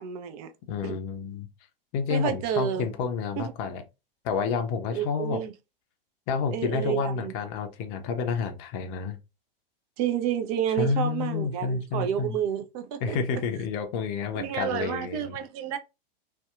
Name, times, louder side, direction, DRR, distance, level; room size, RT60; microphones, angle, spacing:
voice 1, 0.0-0.5 0.8-1.0 2.1-2.9 3.4-3.5 4.9-5.5 6.5-7.3 10.0-13.2 14.3-15.8, right 9 dB, 40° right, 0.4 m, -30 dB
voice 2, 0.7-1.5 1.9-3.8 4.2-5.4 6.3-9.2 10.8-12.4 13.0-15.4, left 5 dB, 40° left, 0.5 m, -29 dB
2.6 x 2.2 x 2.3 m
hypercardioid pair, 100°, 29 cm